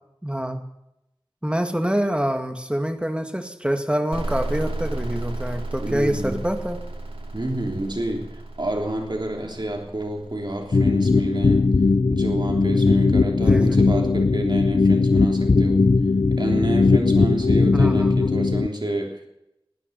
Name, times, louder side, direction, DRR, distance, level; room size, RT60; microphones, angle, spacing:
voice 1, 0.2-0.6 1.4-6.8 13.4-13.8 17.7-18.3, equal, 10° right, 6 dB, 2.1 m, -26 dB
sound 1, 4.1-11.7, right 2 dB, 80° right, 2.6 m, -33 dB
voice 2, 5.8-6.4 7.3-11.7 12.1-15.9 16.3-19.3, right 1 dB, 50° right, 2 dB, 3.4 m, -29 dB
sound 2, 10.7-18.7, left 3 dB, 60° left, 0.5 m, -19 dB
19.5 x 9.8 x 6.9 m, 0.84 s
wide cardioid pair, 40°, 9 cm